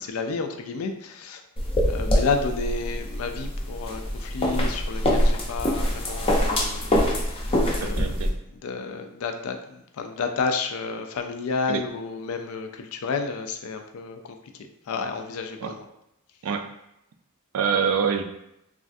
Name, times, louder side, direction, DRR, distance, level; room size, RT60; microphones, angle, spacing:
voice 1, 0.0-1.4 1.9-7.5 7.8-8.1 8.6-14.4 14.9-15.8, left 4 dB, 75° left, 6 dB, 0.4 m, -31 dB
sound 1, 1.6-8.3, equal, 25° left, 0.5 m, -24 dB
voice 2, 7.8-8.3 11.7-11.8 15.6-15.8 16.4-16.7 17.5-18.2, right 6 dB, 85° right, 7 dB, 0.4 m, -25 dB
3.1 x 2.4 x 2.5 m, 0.83 s
head